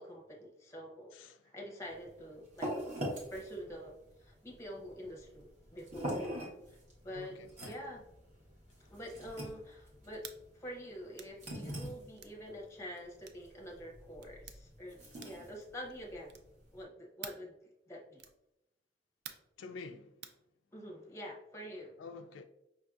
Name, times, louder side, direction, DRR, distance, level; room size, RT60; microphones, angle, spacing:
voice 1, 0.0-1.1 1.4-2.7 3.3-6.3 6.7-7.4 7.6-8.0 8.8-15.0 15.2-16.4 16.7-17.5 17.9-18.2 20.7-22.0, equal, 15° left, 0.7 m, -46 dB
voice 2, 1.1-1.4 7.1-7.8 8.8-8.9 19.6-20.1 22.0-22.4, left 4 dB, 80° left, 0.3 m, -48 dB
sound 1, 1.8-16.8, equal, 40° right, 0.9 m, -44 dB
sound 2, 10.2-10.4 11.1-11.4 12.2-12.4 13.2-13.5 14.2-14.6 15.2-15.5 16.3-16.6 17.2-17.5 18.2-18.4 19.2-19.5 20.2-20.4, right 9 dB, 60° right, 0.3 m, -49 dB
4.9 x 2.6 x 2.3 m
head